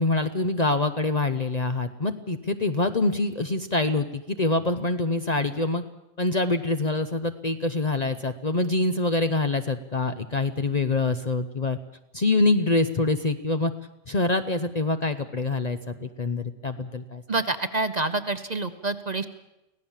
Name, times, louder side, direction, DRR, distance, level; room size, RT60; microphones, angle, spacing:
voice 1, 0.0-5.8 6.2-11.8 12.1-13.7 14.1-17.2, left 2 dB, 40° left, 8 dB, 0.8 m, -25 dB
voice 2, 17.3-19.3, right 2 dB, 35° right, 10 dB, 1.0 m, -27 dB
24.5 x 17.0 x 7.3 m, 0.94 s
omnidirectional pair, 1.3 m